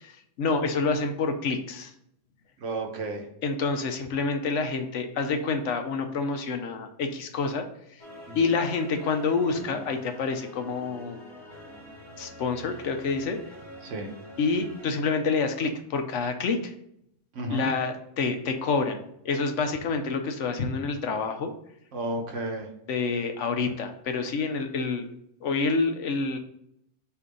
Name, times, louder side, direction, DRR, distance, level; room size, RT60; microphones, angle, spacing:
voice 1, 0.0-1.9 3.4-8.0 8.3-11.2 12.2-13.4 14.4-16.7 17.5-19.0 19.2-21.5 22.9-25.1 25.4-26.4, left 4 dB, 70° left, 6 dB, 1.0 m, -28 dB
voice 2, 2.6-3.3 8.3-8.4 13.8-14.1 17.3-17.7 21.9-22.7, right 2 dB, 70° right, 2 dB, 1.3 m, -32 dB
sound 1, 8.0-14.9, left 1 dB, 20° left, 1.7 m, -45 dB
6.8 x 2.7 x 5.3 m, 0.75 s
omnidirectional pair, 1.3 m